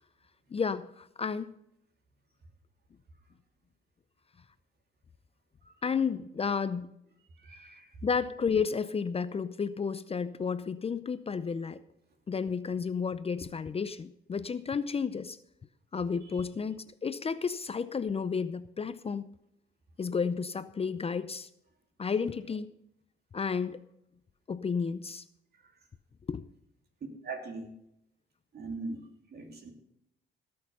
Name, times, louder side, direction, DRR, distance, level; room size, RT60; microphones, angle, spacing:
voice 1, 0.5-1.5 5.8-6.9 8.0-11.8 12.3-15.4 15.9-19.3 20.0-21.5 22.0-22.7 23.3-23.8 24.5-25.2 26.3-26.4, left 5 dB, 30° left, 14 dB, 0.6 m, -32 dB
voice 2, 7.4-7.9 27.2-27.7 28.5-29.0 29.3-29.7, right 3 dB, 55° right, 3 dB, 3.2 m, -40 dB
17.5 x 6.7 x 5.5 m, 0.81 s
cardioid pair, 90°, 20 cm